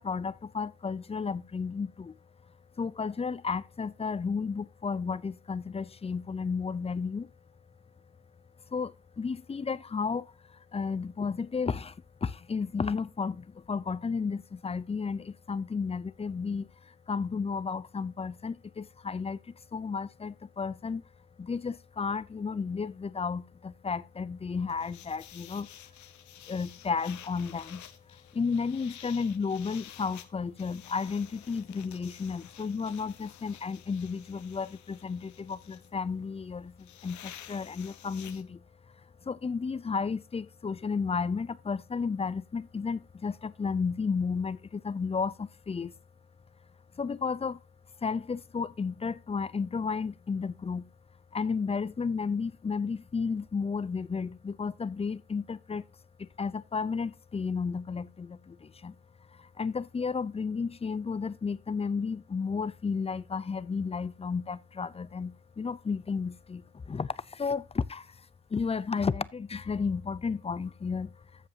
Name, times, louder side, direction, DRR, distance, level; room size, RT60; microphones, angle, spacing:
voice 1, 0.0-2.1 2.8-7.3 8.7-21.0 21.4-25.7 26.5-27.8 28.3-38.6 39.2-45.9 47.0-47.6 48.0-50.9 51.3-55.8 56.2-58.9 59.4-68.1 68.5-71.1, left 5 dB, 20° left, 0.5 m, -33 dB
sound 1, 24.7-38.4, left 11 dB, 70° left, 1.1 m, -51 dB
15.0 x 5.4 x 2.8 m
cardioid pair, 90°, 30 cm